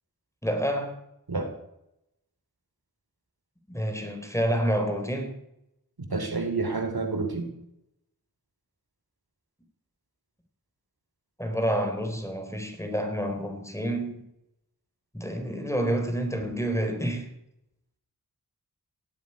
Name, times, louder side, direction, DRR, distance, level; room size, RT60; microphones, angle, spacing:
voice 1, 0.4-1.0 3.7-5.4 11.4-14.2 15.1-17.3, equal, 10° left, 5 dB, 3.9 m, -28 dB
voice 2, 6.1-7.5, right 3 dB, 80° right, 6 dB, 3.4 m, -29 dB
17.0 x 8.5 x 9.9 m, 0.82 s
wide cardioid pair, 45°, 37 cm